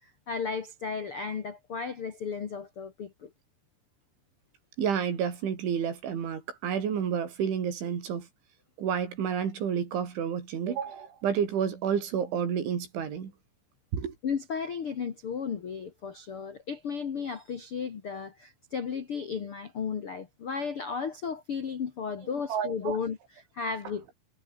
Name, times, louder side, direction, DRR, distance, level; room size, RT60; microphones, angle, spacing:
voice 1, 0.0-3.3 14.2-24.0, left 6 dB, 60° left, 1.4 m, -34 dB
voice 2, 4.8-8.3 8.8-13.3 13.9-14.1 22.5-23.0, right 7 dB, 85° right, 6.4 m, -30 dB
omnidirectional pair, 5.3 m